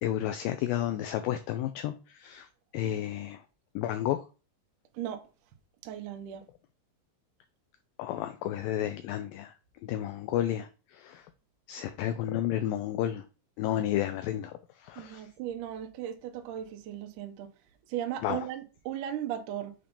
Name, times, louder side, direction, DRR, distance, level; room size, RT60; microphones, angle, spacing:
voice 1, 0.0-2.5 2.7-3.4 3.8-4.2 8.0-9.5 9.8-11.3 11.7-13.2 13.6-15.3 18.2-18.5, left 12 dB, 85° left, 2.0 m, -32 dB
voice 2, 4.9-5.3 5.8-6.4 15.0-17.5 17.9-19.7, right 11 dB, 75° right, 2.0 m, -37 dB
7.8 x 2.8 x 5.1 m
omnidirectional pair, 4.5 m